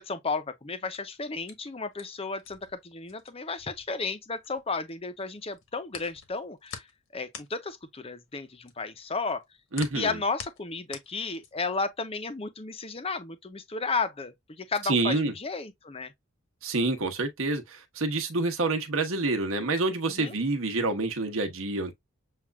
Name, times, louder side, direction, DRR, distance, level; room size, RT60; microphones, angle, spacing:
voice 1, 0.0-6.9 7.1-9.4 9.9-16.1 20.1-20.4, left 4 dB, 30° left, 0.7 m, -33 dB
sound 1, 0.7-4.9 5.2-11.8, left 6 dB, 75° left, 1.3 m, -46 dB
voice 2, 9.7-10.2 14.8-15.3 16.6-21.9, right 3 dB, 85° right, 1.1 m, -27 dB
7.4 x 2.5 x 2.2 m
head